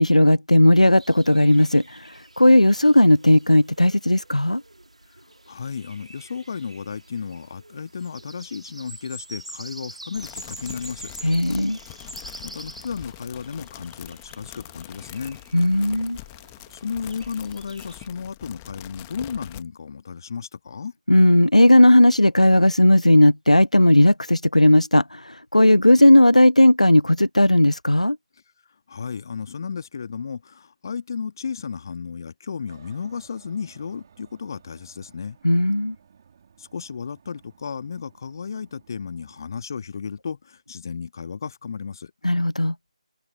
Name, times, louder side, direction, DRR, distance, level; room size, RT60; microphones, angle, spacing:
voice 1, 0.0-1.8 2.4-4.6 11.2-11.8 15.5-16.2 21.1-28.2 35.4-35.9 42.2-42.7, left 1 dB, 85° left, 0.7 m, -16 dB
sound 1, 1.0-18.1, right 1 dB, 70° right, 2.9 m, -45 dB
voice 2, 5.5-11.1 12.4-15.4 16.7-20.9 28.9-35.4 36.6-42.1, left 6 dB, 35° left, 2.0 m, -33 dB
sound 2, 10.1-19.6, left 23 dB, 15° left, 1.7 m, -43 dB
Aircraft, 32.7-39.5, right 7 dB, 30° right, 4.5 m, -56 dB
figure-of-eight pair, 155°, 4 cm